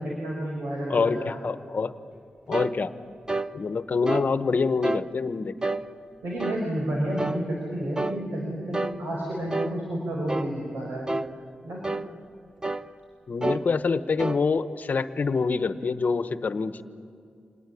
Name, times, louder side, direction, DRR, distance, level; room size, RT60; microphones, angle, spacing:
voice 1, 0.0-1.3 6.2-11.1 11.6-11.8, right 1 dB, 80° right, -2 dB, 5.7 m, -30 dB
voice 2, 0.9-1.9 2.5-2.9 3.5-5.5 13.3-16.8, left 4 dB, 55° left, 11 dB, 1.1 m, -26 dB
sound 1, 2.5-2.7 3.3-3.5 4.1-4.3 4.8-5.1 5.6-5.8 6.4-6.6 7.2-7.4 8.0-8.2 8.7-9.0 9.5-9.7 10.3-10.5 11.1-11.3 11.8-12.1 12.6-12.9 13.4-13.6 14.2-14.4, right 2 dB, 20° right, 0.8 m, -29 dB
26.5 x 19.5 x 9.9 m, 2.4 s
cardioid pair, 75°, 3 cm